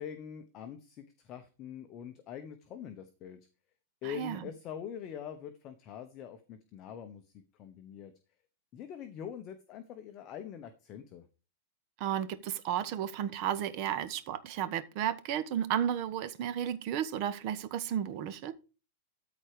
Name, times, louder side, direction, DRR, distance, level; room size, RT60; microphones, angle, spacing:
voice 1, 0.0-3.5 4.0-8.1 8.7-11.3, left 8 dB, 30° left, 1.0 m, -44 dB
voice 2, 4.0-4.4 12.0-18.5, right 10 dB, 40° right, 1.1 m, -33 dB
13.5 x 4.5 x 5.0 m
supercardioid pair, 155°, 0 cm